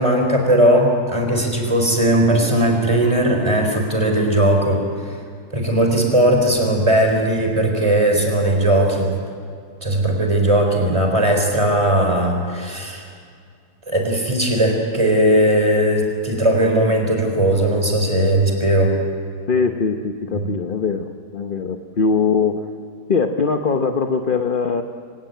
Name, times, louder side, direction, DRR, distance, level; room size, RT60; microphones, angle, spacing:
voice 1, 0.0-5.1 5.5-9.1 9.8-13.0 13.9-19.0 20.3-20.5, right 1 dB, 20° right, 2 dB, 4.0 m, -18 dB
voice 2, 19.5-22.6 23.1-24.8, left 5 dB, 40° left, 6 dB, 0.9 m, -21 dB
25.0 x 17.0 x 9.2 m, 2.2 s
omnidirectional pair, 1.8 m